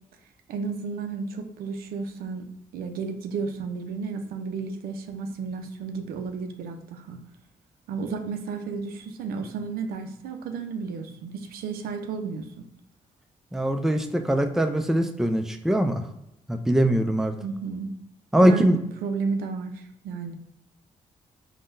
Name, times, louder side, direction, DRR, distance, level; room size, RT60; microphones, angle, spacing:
voice 1, 0.5-2.5 2.7-7.2 7.9-12.7 17.4-17.9 18.4-18.8 19.0-20.4, right 5 dB, 85° right, 6 dB, 0.4 m, -32 dB
voice 2, 13.5-16.0 16.5-17.4 18.3-18.8, right 1 dB, 5° right, 7 dB, 0.3 m, -22 dB
3.5 x 2.1 x 2.5 m, 0.84 s
supercardioid pair, 60°, 15 cm